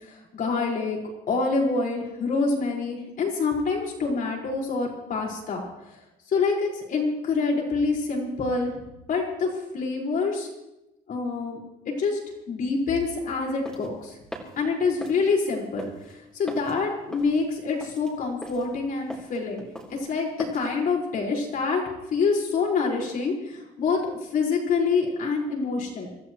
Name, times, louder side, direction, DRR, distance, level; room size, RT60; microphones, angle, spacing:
voice 1, 0.1-1.0 1.3-5.6 6.3-8.7 9.1-10.5 11.1-11.6 11.9-12.2 12.5-14.1 14.6-15.9 16.3-19.7 20.1-21.8 22.1-24.0 24.3-26.1, left 4 dB, 55° left, -1 dB, 5.2 m, -26 dB
sound 1, 13.4-20.7, equal, 5° left, 3.7 m, -42 dB
26.5 x 13.5 x 3.2 m, 0.94 s
cardioid pair, 110°, 17 cm